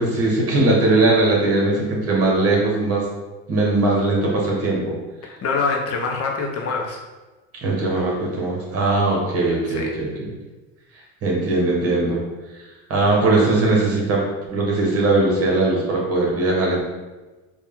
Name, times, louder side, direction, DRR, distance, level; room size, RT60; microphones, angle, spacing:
voice 1, 0.0-3.0 3.5-5.0 7.6-10.3 11.2-12.2 12.9-14.2 14.5-16.8, right 2 dB, 40° right, -2 dB, 1.4 m, -20 dB
voice 2, 5.2-7.0 9.7-9.9, left 4 dB, 45° left, 0 dB, 0.7 m, -25 dB
4.4 x 2.4 x 3.6 m, 1.2 s
supercardioid pair, 115°, 35 cm